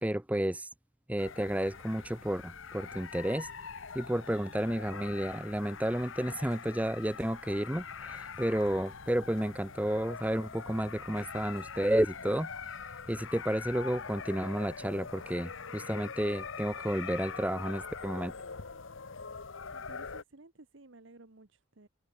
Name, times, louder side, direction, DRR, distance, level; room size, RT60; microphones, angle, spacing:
voice 1, 0.0-0.7 1.1-3.5 3.9-12.7 13.1-18.3, right 1 dB, 5° right, 0.7 m, -31 dB
sound 1, 1.2-20.2, left 5 dB, 70° left, 1.1 m, -43 dB
voice 2, 19.7-21.9, right 2 dB, 65° right, 1.2 m, -55 dB
head